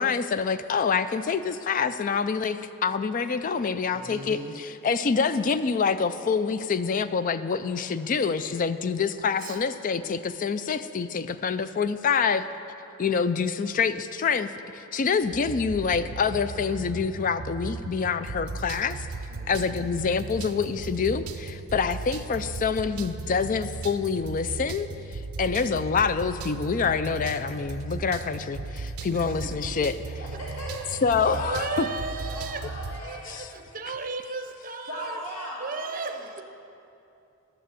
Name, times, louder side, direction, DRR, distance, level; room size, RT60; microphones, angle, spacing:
voice 1, 0.0-12.5 13.0-19.1 19.5-24.9 25.1-29.9 31.0-31.9 33.3-33.5, left 5 dB, 35° left, 12 dB, 0.3 m, -26 dB
voice 2, 3.9-4.6 9.4-9.6 19.3-19.8 29.1-29.8 30.3-35.2 35.6-36.4, right 3 dB, 40° right, 6 dB, 0.6 m, -37 dB
sound 1, 15.3-33.0, right 4 dB, 80° right, 0.6 m, -37 dB
voice 3, 30.2-31.8 32.3-33.4 34.9-36.3, equal, 75° left, -5 dB, 1.7 m, -38 dB
12.0 x 6.8 x 7.6 m, 2.7 s
head